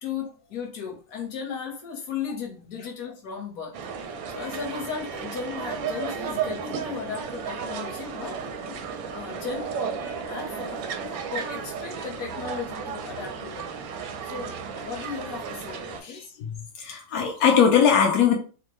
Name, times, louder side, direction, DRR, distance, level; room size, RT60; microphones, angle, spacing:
voice 1, 0.0-3.7 4.3-8.5 9.1-9.8 10.3-10.9 11.3-13.7 14.2-16.4, left 6 dB, 55° left, 1.2 m, -36 dB
sound 1, 3.7-16.0, right 6 dB, 90° right, 1.4 m, -34 dB
voice 2, 16.0-18.4, left 7 dB, 70° left, 0.8 m, -21 dB
3.6 x 2.1 x 3.0 m
omnidirectional pair, 2.0 m